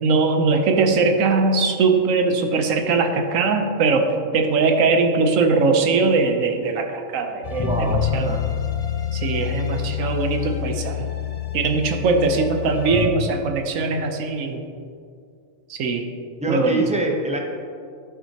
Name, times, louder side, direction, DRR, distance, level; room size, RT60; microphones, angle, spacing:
voice 1, 0.0-4.1 4.3-8.3 9.1-11.1 11.5-14.6 15.7-16.1 16.5-16.8, right 4 dB, 85° right, 5 dB, 1.1 m, -21 dB
sound 1, 7.4-13.1, left 9 dB, 55° left, 0.4 m, -27 dB
voice 2, 7.6-8.4 16.4-17.4, right 2 dB, 10° right, 0 dB, 0.4 m, -24 dB
10.5 x 5.9 x 2.8 m, 2.3 s
omnidirectional pair, 1.3 m